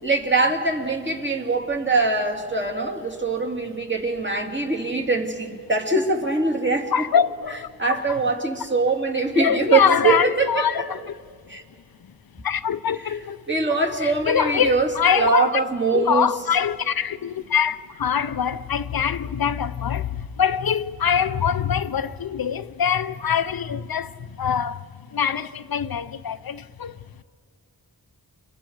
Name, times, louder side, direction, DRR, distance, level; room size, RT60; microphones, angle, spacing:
voice 1, 0.0-7.0 7.8-10.8 11.5-11.6 13.0-16.3, right 3 dB, 30° right, 2.6 m, -23 dB
voice 2, 6.9-8.0 9.4-11.1 12.4-13.4 14.0-15.5 15.9-20.1 20.4-24.1 24.4-24.8 25.1-26.9, left 7 dB, 70° left, 0.6 m, -23 dB
29.5 x 24.5 x 4.7 m
wide cardioid pair, 60°, 37 cm